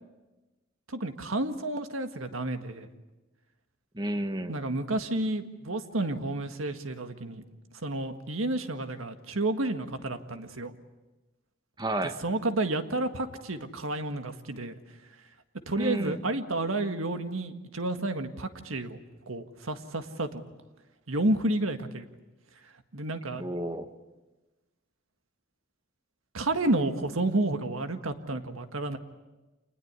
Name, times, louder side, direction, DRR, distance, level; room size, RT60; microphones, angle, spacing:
voice 1, 0.9-2.9 4.5-7.4 7.8-10.7 12.2-14.7 15.7-19.0 19.3-20.4 21.1-22.1 22.9-23.4 26.3-29.0, right 2 dB, 85° right, 8 dB, 1.8 m, -30 dB
voice 2, 3.9-4.6 11.8-12.2 15.8-16.2 23.3-23.9, right 1 dB, 20° right, 9 dB, 1.4 m, -31 dB
27.0 x 20.0 x 9.6 m, 1.1 s
head